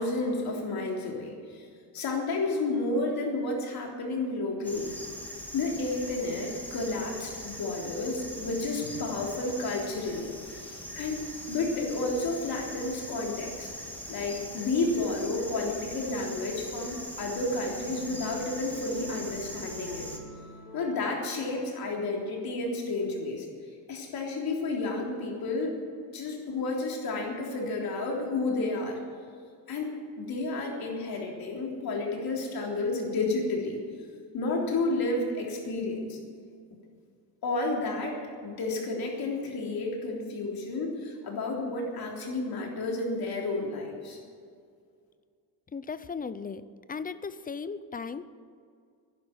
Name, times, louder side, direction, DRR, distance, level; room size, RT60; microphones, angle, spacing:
voice 1, 0.0-1.7 1.9-4.9 5.5-10.6 10.9-13.7 14.1-20.1 20.7-23.5 23.9-25.8 26.1-29.0 29.7-33.8 34.3-36.2 37.4-44.2, left 2 dB, 60° left, 0 dB, 3.6 m, -31 dB
sound 1, 4.6-20.2, equal, 5° left, 1.8 m, -41 dB
sound 2, 17.8-22.4, equal, 50° right, 5.0 m, -48 dB
voice 2, 45.7-46.6 46.9-48.3, left 5 dB, 20° left, 14 dB, 0.5 m, -36 dB
11.0 x 11.0 x 9.0 m, 2.2 s
cardioid pair, 125°, 42 cm